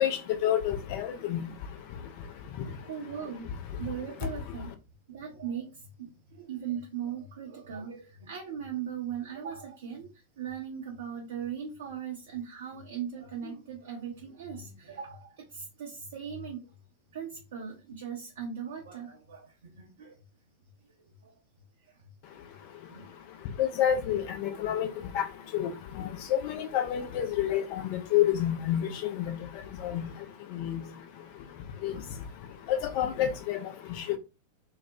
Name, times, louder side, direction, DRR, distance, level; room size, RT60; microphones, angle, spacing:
voice 1, 0.0-1.4 23.6-24.9 25.1-25.2 25.5-25.7 26.0-29.4 29.8-30.0 30.5-30.8 31.8-31.9 32.7-33.7, left 10 dB, 45° left, 0.4 m, -28 dB
voice 2, 2.9-4.7 5.1-10.1 10.4-16.7 17.1-20.2 21.2-21.3 22.0-22.1 22.3-22.5 22.9-23.1 31.6-31.7 32.2-32.3, right 8 dB, 60° right, 0.5 m, -39 dB
2.3 x 2.1 x 2.6 m
figure-of-eight pair, 90°, 0 cm